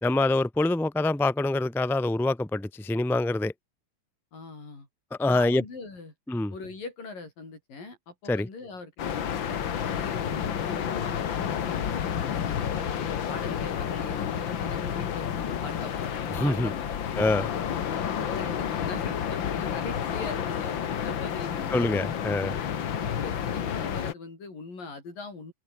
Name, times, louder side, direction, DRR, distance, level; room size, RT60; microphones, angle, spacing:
voice 1, 0.0-3.5 5.2-5.6 6.3-6.5 8.3-8.5 16.3-16.7 17.2-17.5 21.7-22.5, left 2 dB, ahead, 0.9 m, -25 dB
voice 2, 4.3-4.9 5.2-6.1 6.5-17.4 18.1-21.9 23.0-25.5, left 3 dB, 85° left, 9.9 m, -41 dB
sound 1, 9.0-24.1, left 8 dB, 50° left, 1.5 m, -30 dB
omnidirectional pair, 3.8 m